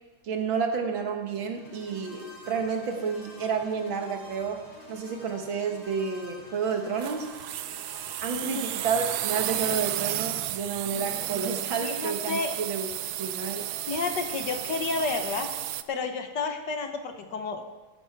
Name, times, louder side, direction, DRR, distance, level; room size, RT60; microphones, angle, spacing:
voice 1, 0.2-4.6 4.9-7.4 8.2-12.9 13.2-13.7, right 6 dB, 70° right, 4 dB, 2.2 m, -30 dB
sound 1, 1.4-9.9, left 1 dB, 25° left, 5.6 m, -49 dB
sound 2, 7.0-15.8, right 13 dB, 85° right, 0.8 m, -33 dB
voice 2, 8.3-8.6 11.8-12.6 13.9-15.5 15.9-17.6, left 4 dB, 60° left, 6 dB, 1.5 m, -31 dB
14.5 x 11.5 x 4.6 m, 1.2 s
omnidirectional pair, 2.3 m